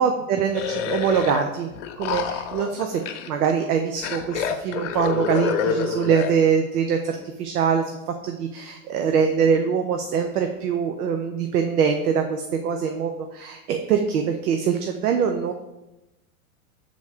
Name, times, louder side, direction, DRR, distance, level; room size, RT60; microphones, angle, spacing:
voice 1, 0.0-1.7 2.0-7.8 8.2-15.5, right 7 dB, 80° right, 5 dB, 0.8 m, -23 dB
sound 1, 0.5-1.4 1.7-3.5 4.0-6.3, left 6 dB, 55° left, 0.8 m, -27 dB
7.0 x 4.1 x 4.9 m, 0.97 s
supercardioid pair, 170°, 44 cm